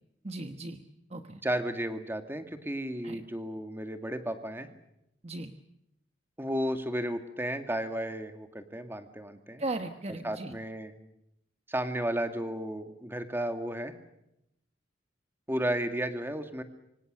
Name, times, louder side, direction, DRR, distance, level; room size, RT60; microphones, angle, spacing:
voice 1, 0.2-1.4 3.0-3.2 5.2-5.5 9.6-10.5, right 2 dB, 35° right, 7 dB, 1.2 m, -37 dB
voice 2, 1.4-4.7 6.4-9.6 10.2-10.9 11.7-13.9 15.5-16.6, right 1 dB, 10° right, 7 dB, 2.2 m, -33 dB
27.0 x 25.0 x 6.7 m, 0.82 s
head